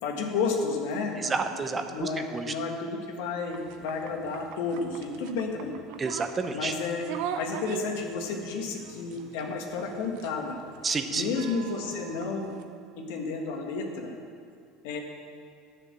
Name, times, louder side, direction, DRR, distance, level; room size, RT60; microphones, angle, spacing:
voice 1, 0.0-1.4 1.9-5.7 6.5-7.1 7.4-10.6 11.1-12.5 13.0-14.2 14.8-15.0, left 4 dB, 80° left, 2 dB, 1.6 m, -31 dB
voice 2, 1.2-2.5 6.0-6.7 10.8-11.3, right 4 dB, 25° right, 8 dB, 0.8 m, -30 dB
sound 1, 3.5-12.6, right 8 dB, 75° right, 0.7 m, -42 dB
10.5 x 6.8 x 7.6 m, 2.3 s
supercardioid pair, 120°, 0 cm